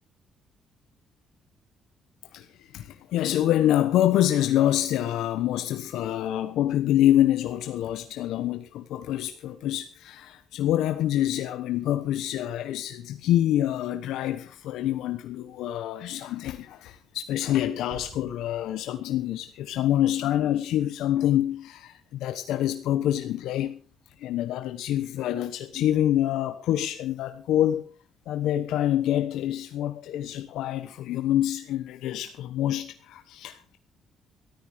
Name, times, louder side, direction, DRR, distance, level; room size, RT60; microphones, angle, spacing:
voice 1, 2.3-23.8 24.2-27.9 28.3-33.8, left 12 dB, 85° left, 1.0 m, -26 dB
sound 1, 17.9-19.8, right 4 dB, 75° right, 5.1 m, -50 dB
14.0 x 13.0 x 5.1 m
cardioid pair, 115°, 0 cm